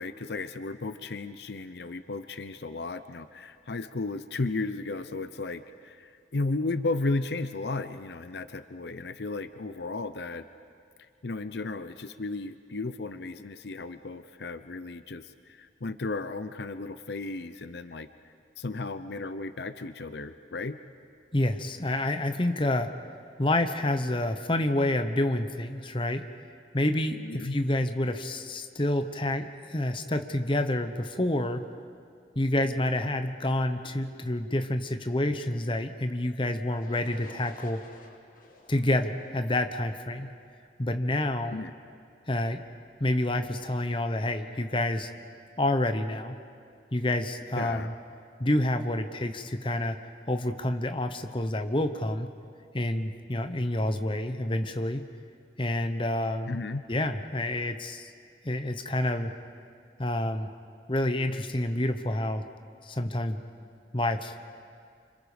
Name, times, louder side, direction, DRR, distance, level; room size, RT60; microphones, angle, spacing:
voice 1, 0.0-10.5 11.2-20.8 27.2-27.6 41.5-41.7 47.5-47.9 56.5-56.8, left 3 dB, 70° left, 11 dB, 0.7 m, -34 dB
voice 2, 21.3-22.9 23.4-26.2 26.7-31.6 32.3-37.8 38.7-40.3 40.8-41.6 42.3-42.6 43.0-45.1 45.6-46.4 46.9-47.9 48.4-50.0 50.3-52.3 52.7-55.1 55.6-56.6 56.9-58.1 58.4-59.3 60.0-60.5 60.9-62.4 62.8-63.4 63.9-64.4, left 1 dB, 30° left, 7 dB, 1.1 m, -28 dB
sound 1, 36.7-40.6, left 2 dB, 50° left, 2.2 m, -53 dB
29.0 x 26.5 x 5.2 m, 2.3 s
head